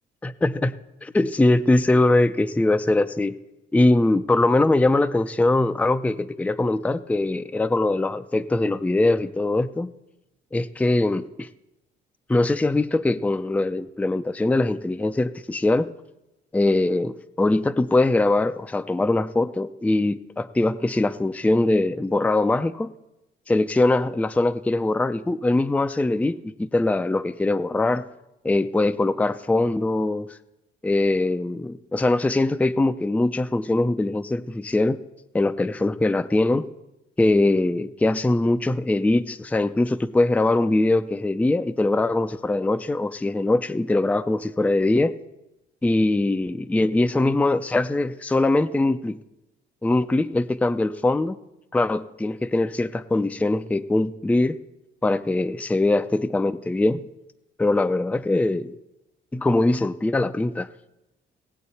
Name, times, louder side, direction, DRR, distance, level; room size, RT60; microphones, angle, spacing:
voice 1, 0.2-0.8 1.0-3.4 3.7-9.9 10.5-11.5 12.3-15.9 16.5-22.9 23.5-28.1 28.4-30.4 30.8-35.0 35.3-36.7 37.2-45.1 45.8-49.2 49.8-51.4 51.7-54.6 55.0-57.0 57.6-58.8 59.3-60.7, left 2 dB, 5° left, 11 dB, 0.4 m, -22 dB
18.5 x 7.8 x 4.1 m, 0.95 s
cardioid pair, 90°, 20 cm